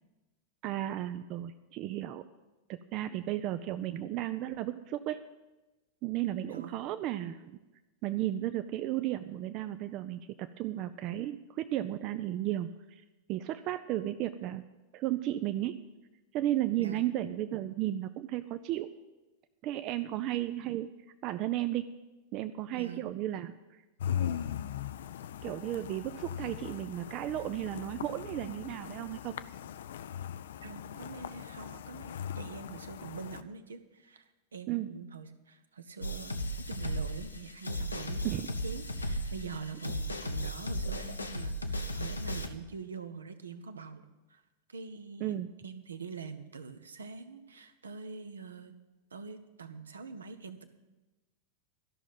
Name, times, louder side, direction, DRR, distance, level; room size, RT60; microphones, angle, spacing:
voice 1, 0.6-2.2 2.7-5.2 6.0-7.5 8.0-13.0 13.3-14.6 14.9-15.8 16.3-18.9 19.6-20.9 21.2-21.9 22.3-23.8 25.4-29.3 34.7-34.9 38.2-38.5 45.2-45.5, right 13 dB, 40° right, 10 dB, 0.4 m, -34 dB
voice 2, 6.5-6.8 16.7-17.1 22.7-23.0 30.6-44.4 44.7-45.3 45.6-48.8 49.1-50.6, right 5 dB, 70° right, 9 dB, 0.8 m, -44 dB
sound 1, 24.0-33.4, left 9 dB, 60° left, 0.4 m, -39 dB
sound 2, 36.0-42.5, equal, 80° left, 0.8 m, -35 dB
13.0 x 6.1 x 9.0 m, 1.1 s
figure-of-eight pair, 90°, 0 cm